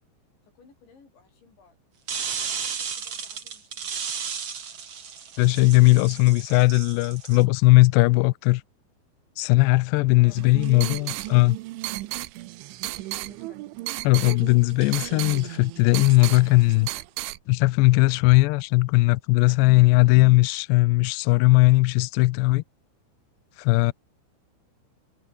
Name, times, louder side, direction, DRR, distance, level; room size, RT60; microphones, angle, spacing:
voice 1, 0.6-1.8 2.4-4.2 5.9-6.3 10.2-11.6 12.8-13.7, left 5 dB, 65° left, 9.6 m, -56 dB
sound 1, 2.1-7.4, right 6 dB, 40° right, 2.8 m, -34 dB
voice 2, 5.4-8.6 9.4-11.6 14.0-16.9 17.5-22.6 23.6-23.9, left 22 dB, 85° left, 2.4 m, -18 dB
sound 2, 10.3-17.4, right 18 dB, 80° right, 3.3 m, -34 dB
omnidirectional pair, 5.6 m